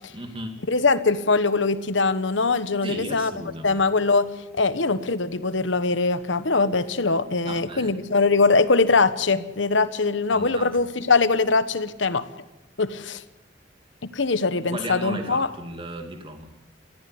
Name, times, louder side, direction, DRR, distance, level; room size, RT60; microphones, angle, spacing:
voice 1, 0.1-0.6 2.8-3.8 7.4-8.0 10.3-11.1 14.7-16.5, right 1 dB, 25° right, 5 dB, 2.4 m, -35 dB
voice 2, 0.7-3.3 3.6-4.3 4.5-12.3 12.8-13.2 14.0-15.5, left 3 dB, 80° left, 13 dB, 1.2 m, -22 dB
20.5 x 14.5 x 9.6 m, 0.96 s
head